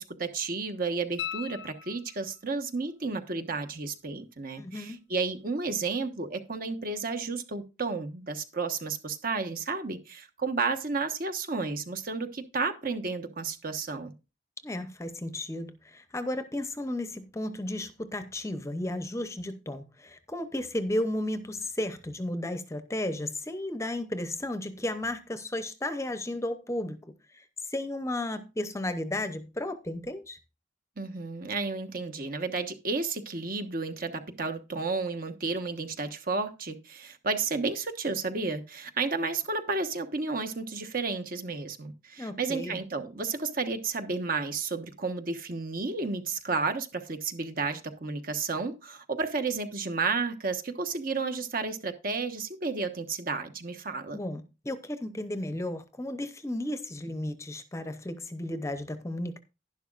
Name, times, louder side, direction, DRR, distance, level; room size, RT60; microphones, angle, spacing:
voice 1, 0.0-14.1 31.0-54.2, right 4 dB, 50° right, 1.2 m, -32 dB
sound 1, 1.2-2.5 5.3-5.4, left 9 dB, 70° left, 0.6 m, -39 dB
voice 2, 4.6-5.0 14.6-27.4 27.7-30.4 42.2-42.8 54.1-59.4, left 1 dB, 15° left, 0.7 m, -34 dB
11.5 x 11.0 x 2.4 m
head